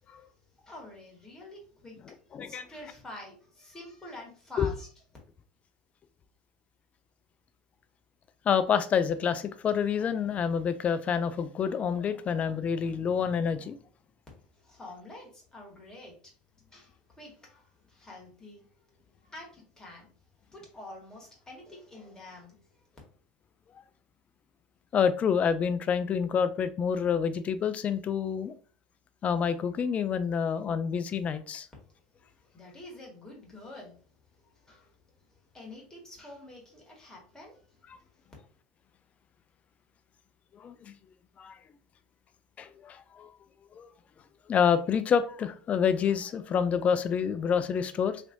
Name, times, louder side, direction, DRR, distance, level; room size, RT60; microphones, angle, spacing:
voice 1, 0.6-4.9 14.5-16.2 16.7-18.7 19.2-20.1 20.5-22.6 32.5-34.0 34.7-34.9 35.5-37.9, left 1 dB, 15° left, 1.7 m, -47 dB
voice 2, 2.3-2.7 4.6-4.7 8.5-13.8 24.9-28.6 29.2-31.7 40.6-40.9 41.4-41.6 42.6-43.3 43.8-43.9 44.5-48.2, left 7 dB, 30° left, 0.4 m, -28 dB
3.2 x 2.9 x 2.6 m
hypercardioid pair, 95°, 4 cm